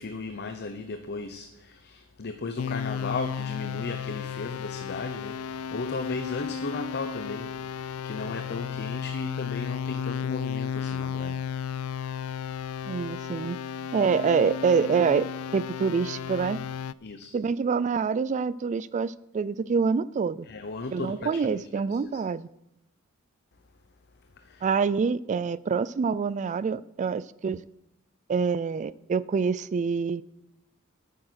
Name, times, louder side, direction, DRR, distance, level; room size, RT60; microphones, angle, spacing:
voice 1, 0.0-11.5 17.0-17.3 20.5-22.2 24.4-24.7, left 3 dB, 50° left, 0.7 m, -36 dB
sound 1, 2.6-16.9, left 7 dB, 85° left, 0.3 m, -34 dB
voice 2, 12.9-13.6 13.9-16.6 17.3-20.5 20.9-22.5 24.6-27.6 28.3-30.2, right 5 dB, 35° right, 0.3 m, -26 dB
9.1 x 8.6 x 6.3 m
head